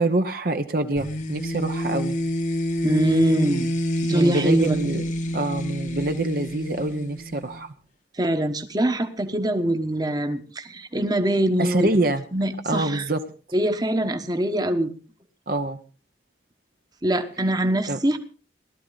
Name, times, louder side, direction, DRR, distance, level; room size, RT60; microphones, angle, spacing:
voice 1, 0.0-2.2 4.1-5.1 5.3-7.7 11.6-12.2 12.6-13.2 15.5-15.8 17.9-18.0, right 2 dB, 55° right, 7 dB, 1.0 m, -25 dB
sound 1, 1.0-7.6, equal, 45° left, 1.1 m, -28 dB
voice 2, 2.8-3.7 4.0-4.8 8.2-11.9 12.3-13.0 13.5-14.9 17.0-18.2, right 1 dB, 20° right, 7 dB, 1.2 m, -23 dB
18.0 x 13.0 x 4.1 m, 0.37 s
head